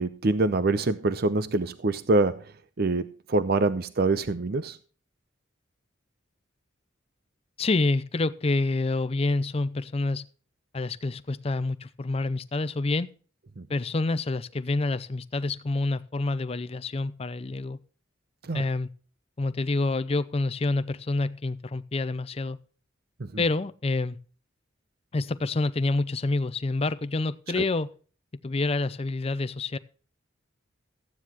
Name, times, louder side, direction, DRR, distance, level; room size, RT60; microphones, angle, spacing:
voice 1, 0.0-2.4 2.8-4.8 13.6-13.7 18.4-18.6 23.2-23.4 27.6-27.7, right 2 dB, 50° right, 0.6 m, -25 dB
voice 2, 7.6-10.2 10.7-13.1 13.7-17.8 18.5-18.9 19.4-22.6 23.4-24.2 25.1-27.9 28.4-29.8, left 2 dB, 30° left, 0.5 m, -27 dB
14.5 x 9.5 x 2.9 m
head